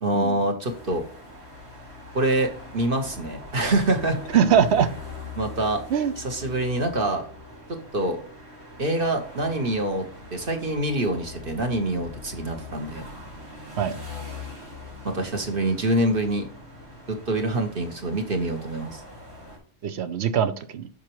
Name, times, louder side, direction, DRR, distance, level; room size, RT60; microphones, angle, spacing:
voice 1, 0.0-1.0 2.1-4.2 5.3-5.8 6.2-7.3 7.9-8.2 8.8-10.1 10.3-13.0 15.0-16.5 17.1-19.0, right 1 dB, 45° right, 4 dB, 1.5 m, -25 dB
sound 1, 0.6-19.6, left 3 dB, 80° right, 3.8 m, -42 dB
voice 2, 4.3-4.9 5.9-6.1 13.8-14.0 19.8-20.9, right 8 dB, 65° right, 11 dB, 1.0 m, -22 dB
8.1 x 6.1 x 3.1 m, 0.42 s
omnidirectional pair, 1.3 m